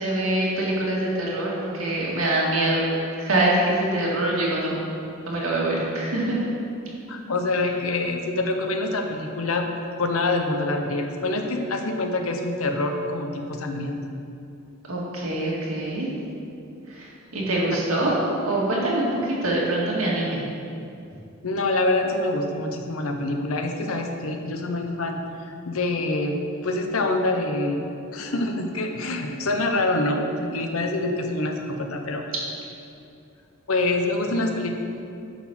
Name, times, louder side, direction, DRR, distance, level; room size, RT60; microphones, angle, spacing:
voice 1, 0.0-2.8 3.2-4.8 5.3-6.4 14.9-16.1 16.9-18.1 18.5-20.4, right 1 dB, 85° right, -4 dB, 2.0 m, -24 dB
voice 2, 7.1-9.7 10.0-14.0 21.4-25.2 25.7-26.3 26.6-32.2 33.7-34.7, left 2 dB, 85° left, 4 dB, 0.9 m, -25 dB
9.4 x 4.2 x 6.1 m, 2.6 s
head